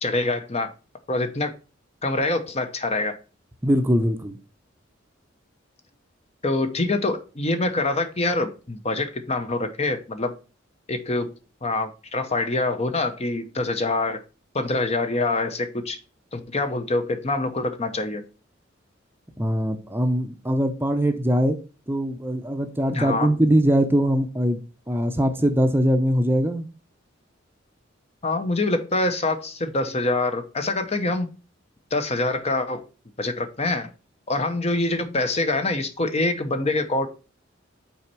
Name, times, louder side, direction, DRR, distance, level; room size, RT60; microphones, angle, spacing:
voice 1, 0.0-0.7 1.1-1.5 2.0-3.2 6.4-10.3 10.9-11.3 11.6-14.2 14.5-16.0 16.3-18.2 22.9-23.3 28.2-31.3 31.9-32.8 33.2-33.9 34.3-37.1, left 2 dB, 35° left, 0.8 m, -25 dB
voice 2, 3.6-4.4 19.4-21.6 21.9-24.6 24.9-26.7, equal, 10° right, 0.6 m, -22 dB
5.8 x 4.2 x 6.0 m
head